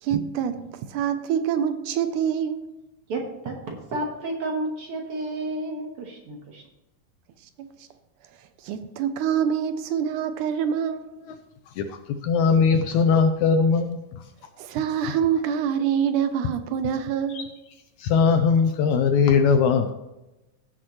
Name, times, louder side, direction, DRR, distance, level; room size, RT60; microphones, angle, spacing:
voice 1, 0.0-2.7 7.6-7.9 8.6-11.1 14.6-17.5, right 8 dB, 80° right, 2.0 m, -26 dB
voice 2, 3.1-6.6, right 2 dB, 60° right, 1.7 m, -31 dB
voice 3, 11.8-14.2 17.3-17.5 18.0-19.9, left 5 dB, 80° left, 1.8 m, -20 dB
16.0 x 6.5 x 3.0 m
omnidirectional pair, 3.8 m